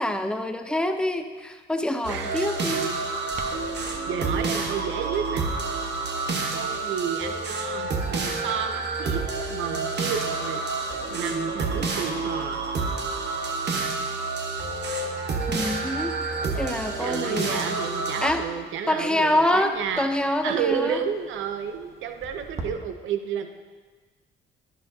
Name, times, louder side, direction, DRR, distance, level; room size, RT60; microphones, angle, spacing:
voice 1, 0.0-2.9 15.5-17.8 18.2-18.5 18.9-21.0, left 1 dB, 5° left, 7 dB, 0.7 m, -26 dB
sound 1, 2.0-18.3, right 3 dB, 60° right, 1.3 m, -29 dB
voice 2, 2.1-3.0 3.3-3.4 4.1-5.5 6.5-9.2 9.5-10.6 11.1-12.6 17.0-20.1 20.4-23.5, right 7 dB, 80° right, 7 dB, 0.7 m, -31 dB
Clock, 3.3-22.7, right 3 dB, 35° right, 1.1 m, -49 dB
10.5 x 10.0 x 2.8 m, 1.4 s
cardioid pair, 90°, 20 cm